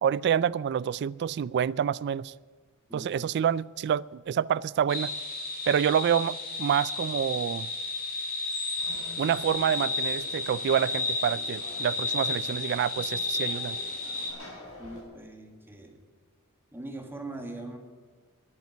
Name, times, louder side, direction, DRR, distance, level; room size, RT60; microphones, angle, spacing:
voice 1, 0.0-2.3 2.9-5.1 5.7-7.7 9.2-13.8, right 8 dB, 50° right, 21 dB, 0.3 m, -27 dB
voice 2, 2.9-3.3 14.8-15.9 16.7-17.8, right 2 dB, 10° right, 3 dB, 1.7 m, -41 dB
sound 1, 4.9-14.3, left 3 dB, 40° left, 2.6 m, -32 dB
Conversation / Crowd, 8.8-15.0, left 1 dB, 65° left, 3.8 m, -47 dB
11.0 x 8.8 x 9.4 m, 1.5 s
head